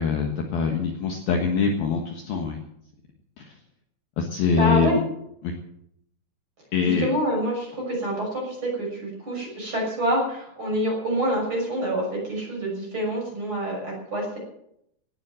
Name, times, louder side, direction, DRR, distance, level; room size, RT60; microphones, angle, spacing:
voice 1, 0.0-2.6 3.4-3.5 4.2-5.0 5.4-5.6 6.7-7.1, left 5 dB, 60° left, 2 dB, 2.8 m, -24 dB
voice 2, 4.6-5.0 6.8-14.4, equal, 25° right, -1 dB, 6.7 m, -27 dB
18.5 x 9.9 x 7.6 m, 0.76 s
omnidirectional pair, 5.6 m